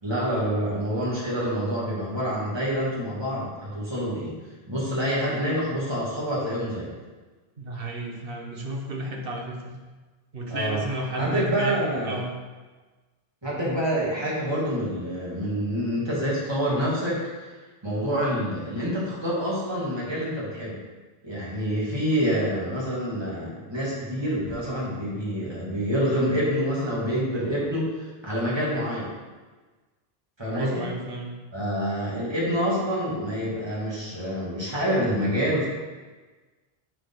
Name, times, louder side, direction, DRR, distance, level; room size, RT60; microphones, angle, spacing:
voice 1, 0.0-4.4 4.7-6.9 10.5-10.8 11.2-12.2 13.4-17.5 17.8-20.8 21.2-29.1 30.4-30.9 31.5-35.7, equal, 25° right, -7 dB, 2.5 m, -27 dB
voice 2, 7.6-9.8 10.3-11.8 12.0-12.4 30.5-31.4, right 1 dB, 65° right, 0 dB, 1.5 m, -32 dB
11.5 x 4.8 x 4.0 m, 1.3 s
omnidirectional pair, 1.0 m